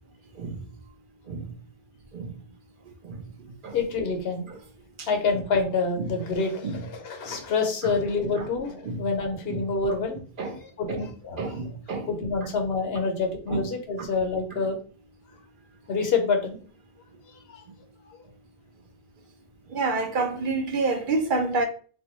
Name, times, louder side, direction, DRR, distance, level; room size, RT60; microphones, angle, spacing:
voice 1, 3.7-4.5 5.1-10.2 10.8-11.4 12.1-14.8 15.9-16.6, left 4 dB, 75° left, 1.0 m, -27 dB
voice 2, 11.4-12.3 13.5-13.6 14.6-14.7 19.7-21.7, right 3 dB, 60° right, 0.7 m, -28 dB
3.4 x 2.6 x 2.9 m
omnidirectional pair, 1.1 m